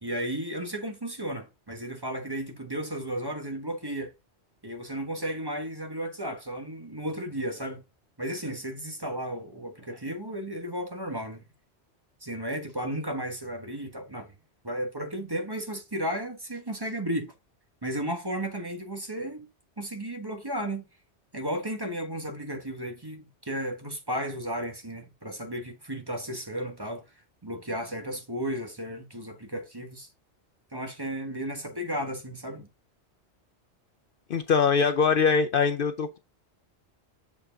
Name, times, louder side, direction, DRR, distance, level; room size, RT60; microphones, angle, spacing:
voice 1, 0.0-4.1 4.6-7.8 8.2-11.4 12.2-14.3 14.6-17.3 17.8-19.5 19.8-20.8 21.3-27.0 27.4-30.1 30.7-32.7, right 1 dB, 20° right, 1.3 m, -34 dB
voice 2, 34.3-36.2, left 5 dB, 60° left, 0.7 m, -23 dB
7.4 x 4.7 x 3.7 m
omnidirectional pair, 1.2 m